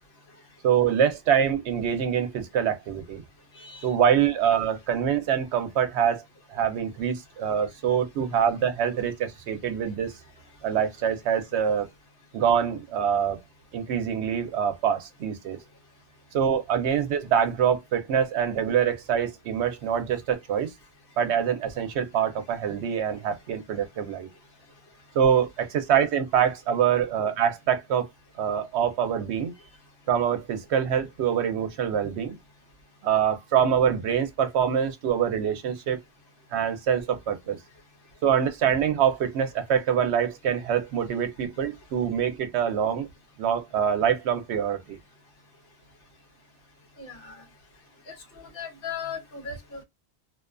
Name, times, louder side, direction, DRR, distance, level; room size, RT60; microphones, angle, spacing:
voice 1, 0.6-3.2 3.8-6.2 6.5-10.1 10.6-11.9 12.3-13.4 13.7-15.6 16.3-20.7 21.2-24.3 25.1-28.1 28.4-29.5 30.1-32.3 33.0-36.0 36.5-37.6 38.2-43.1 43.4-45.0, right 8 dB, 80° right, 0.9 m, -25 dB
voice 2, 3.5-3.9 11.7-11.8 47.0-47.4 48.1-49.8, left 6 dB, 60° left, 0.9 m, -38 dB
2.4 x 2.2 x 2.4 m
omnidirectional pair, 1.1 m